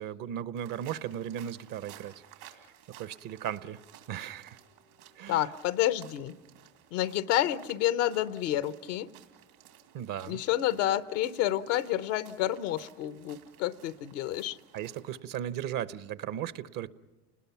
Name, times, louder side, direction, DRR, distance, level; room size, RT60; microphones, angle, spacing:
voice 1, 0.0-2.2 2.5-2.6 3.0-3.8 4.1-4.6 5.2-5.5 9.9-10.4 14.7-16.9, right 10 dB, 60° right, 15 dB, 0.9 m, -36 dB
sound 1, 0.5-15.2, right 10 dB, 80° right, 2.9 m, -56 dB
voice 2, 5.3-6.3 6.9-9.1 10.3-14.6, left 13 dB, 85° left, 14 dB, 0.9 m, -29 dB
30.0 x 20.0 x 5.8 m, 1.1 s
supercardioid pair, 80°, 37 cm